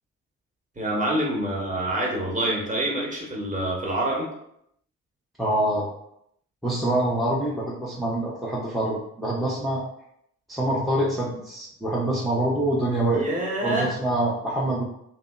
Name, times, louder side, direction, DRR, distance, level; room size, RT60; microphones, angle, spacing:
voice 1, 0.8-4.3 13.1-13.9, right 1 dB, 20° right, -3 dB, 0.9 m, -26 dB
voice 2, 5.4-5.9 6.6-9.9 10.5-13.3 13.6-14.8, right 1 dB, ahead, -6 dB, 0.5 m, -25 dB
2.7 x 2.0 x 2.2 m, 0.75 s
figure-of-eight pair, 40°, 42 cm